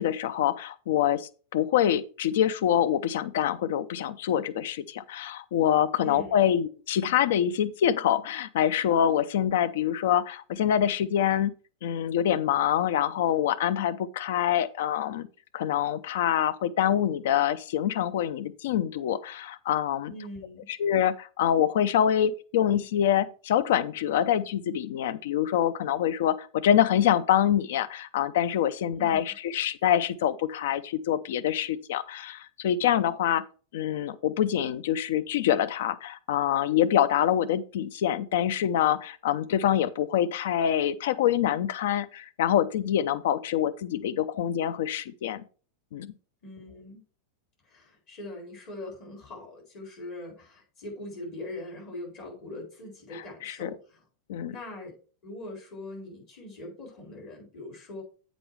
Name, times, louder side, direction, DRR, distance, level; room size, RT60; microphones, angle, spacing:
voice 1, 0.0-11.5 11.8-15.3 15.5-20.1 20.7-33.4 33.7-45.4 45.9-46.1 53.1-53.7 54.3-54.5, left 10 dB, 55° left, 0.5 m, -25 dB
voice 2, 6.0-6.3 20.1-20.7 28.9-29.2 46.4-47.0 47.6-54.0 54.5-54.9 55.2-58.0, left 1 dB, 40° left, 4.1 m, -41 dB
7.8 x 5.0 x 4.7 m
figure-of-eight pair, 90°, 0 cm